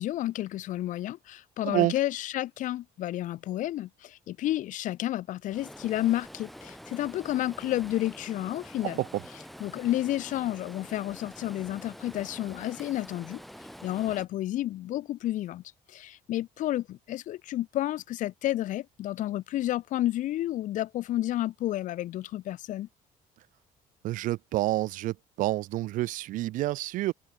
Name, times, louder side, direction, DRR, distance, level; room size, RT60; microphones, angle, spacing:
voice 1, 0.0-9.0 9.6-13.4 13.8-15.6 15.9-22.9, left 14 dB, 55° left, 1.1 m, -31 dB
Stream, 5.5-14.3, equal, ahead, 1.9 m, -46 dB
voice 2, 24.0-27.1, right 16 dB, 55° right, 0.4 m, -28 dB
open air
cardioid pair, 170°, 16 cm